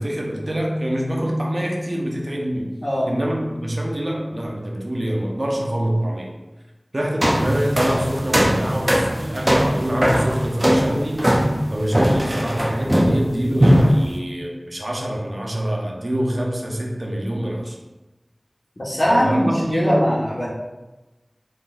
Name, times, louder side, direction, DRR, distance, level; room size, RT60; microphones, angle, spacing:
voice 1, 0.0-2.7 3.1-6.3 6.9-11.3 11.7-17.8 19.1-20.0, equal, 55° right, 0 dB, 0.7 m, -25 dB
sound 1, 7.2-13.3 13.6-14.1, equal, 20° right, 0.5 m, -19 dB
voice 2, 18.8-20.5, equal, 55° left, -7 dB, 1.3 m, -20 dB
3.9 x 3.7 x 2.5 m, 1.1 s
wide cardioid pair, 50°, 0 cm